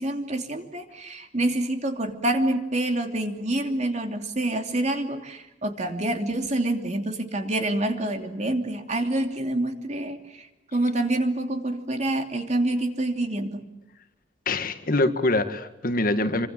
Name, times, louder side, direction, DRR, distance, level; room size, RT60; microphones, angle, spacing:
voice 1, 0.0-13.6, right 1 dB, 40° right, 5 dB, 2.9 m, -27 dB
voice 2, 14.5-16.5, left 2 dB, 55° left, 9 dB, 1.8 m, -24 dB
27.5 x 25.0 x 7.6 m, 0.94 s
head